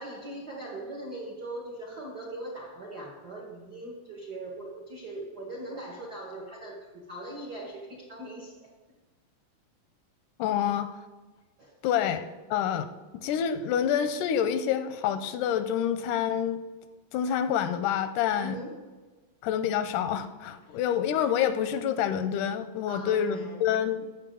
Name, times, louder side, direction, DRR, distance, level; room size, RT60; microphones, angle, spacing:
voice 1, 0.0-8.7 11.6-11.7 18.3-18.8 22.9-23.6, right 1 dB, 60° right, -3 dB, 1.0 m, -40 dB
voice 2, 10.4-10.9 11.8-12.2 12.5-12.9 13.2-16.6 17.1-18.6 19.4-24.1, left 9 dB, 90° left, 10 dB, 2.1 m, -27 dB
14.5 x 5.9 x 3.8 m, 1.2 s
omnidirectional pair, 3.6 m